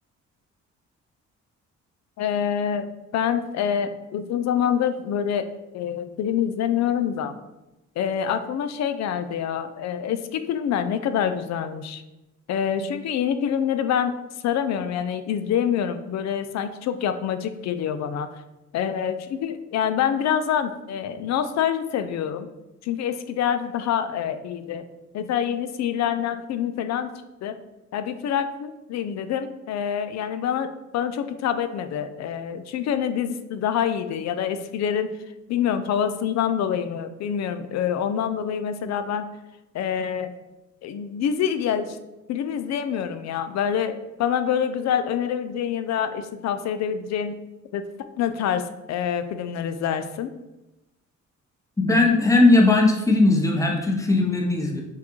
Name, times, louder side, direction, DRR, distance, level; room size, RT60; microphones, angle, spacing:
voice 1, 2.2-2.9 3.1-5.5 5.7-7.3 8.0-12.0 12.5-14.1 14.4-18.3 18.7-22.5 22.8-24.8 25.1-27.1 27.4-27.5 27.9-35.1 35.5-39.2 39.7-40.3 40.8-42.0 42.3-47.3 47.7-47.8 48.2-50.3, left 8 dB, 60° left, 10 dB, 0.4 m, -26 dB
voice 2, 51.8-54.8, left 2 dB, 10° left, 0 dB, 0.8 m, -18 dB
5.8 x 2.4 x 3.0 m, 0.99 s
cardioid pair, 90°, 30 cm